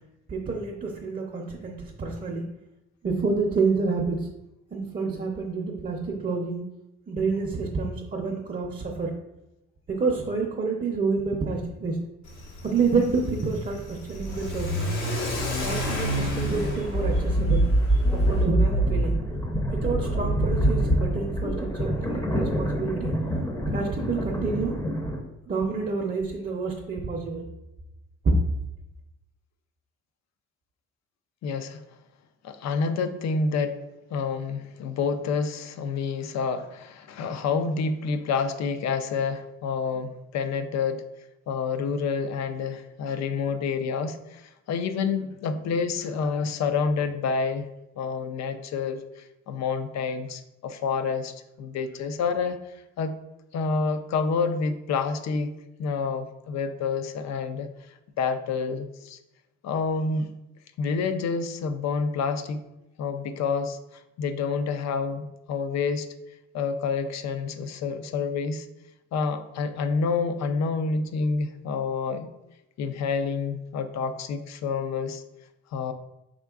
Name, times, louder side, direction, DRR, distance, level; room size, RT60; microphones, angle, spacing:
voice 1, 0.3-2.4 3.0-4.3 4.7-6.6 7.1-9.1 9.9-12.0 12.6-14.9 15.6-17.6 18.1-19.1 19.7-23.1 23.7-24.7 25.5-27.5 28.2-28.3, right 4 dB, 30° right, 0 dB, 0.6 m, -28 dB
Car / Accelerating revving vroom, 12.2-18.4, equal, 85° left, 1.2 m, -31 dB
sound 1, 16.5-25.2, right 1 dB, 10° left, 0.6 m, -25 dB
voice 2, 31.4-31.8 32.4-33.8 34.1-41.0 41.5-47.7 48.0-53.2 53.5-55.5 55.8-57.7 58.2-59.2 59.6-60.3 60.8-62.6 63.0-66.1 66.5-68.7 69.1-72.3 72.8-75.2 75.7-75.9, left 5 dB, 65° left, 10 dB, 0.5 m, -28 dB
4.5 x 3.6 x 2.3 m, 0.92 s
cardioid pair, 90°, 30 cm